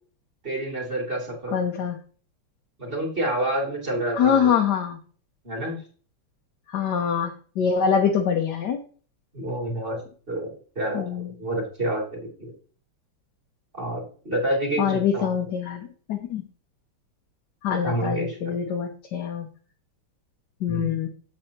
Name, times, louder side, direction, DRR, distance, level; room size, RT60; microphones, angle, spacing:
voice 1, 0.4-1.6 2.8-4.6 5.4-5.8 9.3-10.0 10.3-12.5 13.7-15.3 17.7-18.5 20.7-21.0, right 1 dB, 25° right, -1 dB, 2.9 m, -29 dB
voice 2, 1.5-2.0 4.2-5.0 6.7-8.8 10.9-11.3 14.8-16.4 17.6-19.5 20.6-21.1, left 7 dB, 60° left, 2 dB, 1.3 m, -24 dB
8.7 x 7.6 x 2.9 m, 0.41 s
omnidirectional pair, 2.4 m